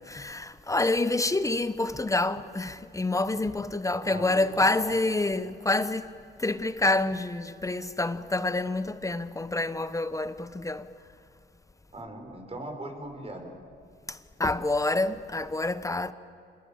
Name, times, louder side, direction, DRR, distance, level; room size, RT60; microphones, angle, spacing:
voice 1, 0.1-6.1 6.4-10.9 14.4-16.1, left 2 dB, 15° left, 1.0 m, -27 dB
voice 2, 4.0-4.3 4.6-4.9 11.9-13.6, right 1 dB, 30° right, 5.1 m, -39 dB
27.5 x 20.0 x 8.8 m
cardioid pair, 90°, 20 cm